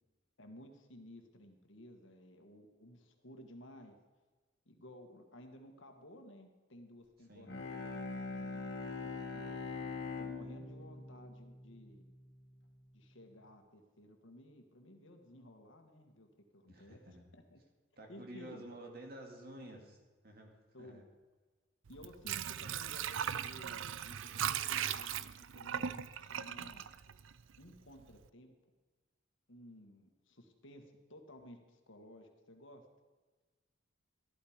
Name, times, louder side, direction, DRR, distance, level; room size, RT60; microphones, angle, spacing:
voice 1, 0.4-4.0 4.6-9.5 10.2-12.0 12.9-16.3 16.5-17.0 17.3-17.6 18.1-18.7 19.6-19.8 20.7-21.0 21.9-25.1 25.5-26.8 27.6-28.5 29.5-32.9, left 1 dB, 70° left, 5 dB, 1.6 m, -55 dB
Bowed string instrument, 7.4-12.3, left 4 dB, 55° left, 1.8 m, -43 dB
voice 2, 16.7-17.2 18.0-20.0 20.2-21.0, right 1 dB, 50° right, 2 dB, 2.3 m, -51 dB
Water / Sink (filling or washing), 21.9-27.7 28.1-28.2, right 9 dB, 75° right, 0.4 m, -38 dB
13.5 x 11.5 x 5.0 m, 1.3 s
head